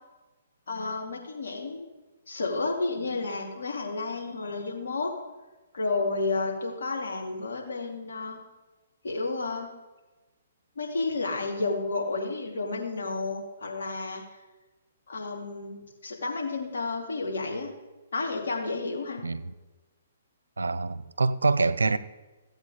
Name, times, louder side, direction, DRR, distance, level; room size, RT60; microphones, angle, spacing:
voice 1, 0.7-1.9 2.3-5.1 5.7-8.4 9.0-9.7 10.8-14.2 15.1-15.8 16.0-17.7 18.1-19.2, left 3 dB, 65° left, -1 dB, 2.8 m, -31 dB
voice 2, 19.2-19.5 20.6-22.0, right 3 dB, 75° right, 16 dB, 0.6 m, -25 dB
15.5 x 8.0 x 5.1 m, 1.2 s
figure-of-eight pair, 125°, 0 cm